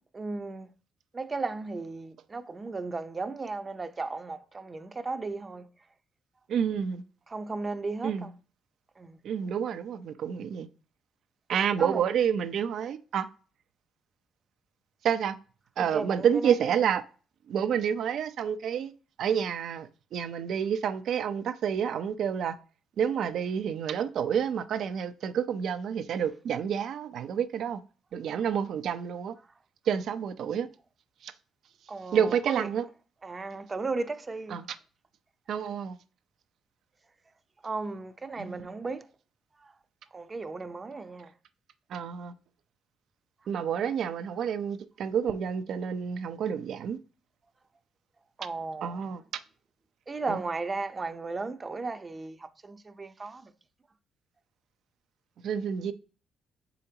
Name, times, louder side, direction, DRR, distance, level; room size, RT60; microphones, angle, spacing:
voice 1, 0.1-0.7 1.1-5.7 7.3-8.3 9.0-9.2 11.8-12.0 15.8-16.6 31.9-32.7 33.2-34.6 37.6-39.1 40.1-41.3 48.4-49.0 50.1-52.4 52.6-53.5, right 3 dB, 30° right, 0.6 m, -35 dB
voice 2, 6.5-7.0 8.0-8.3 9.2-10.7 11.5-13.3 15.0-15.4 15.8-17.0 17.5-18.9 19.2-22.6 23.0-27.8 28.1-29.4 29.9-30.7 31.2-31.3 32.1-32.9 34.5-34.7 35.5-36.0 38.4-38.7 41.9-42.3 43.5-47.0 48.8-49.2 50.3-50.4 55.4-55.9, right 8 dB, 70° right, 0.6 m, -29 dB
6.9 x 5.1 x 2.8 m
cardioid pair, 90°, 0 cm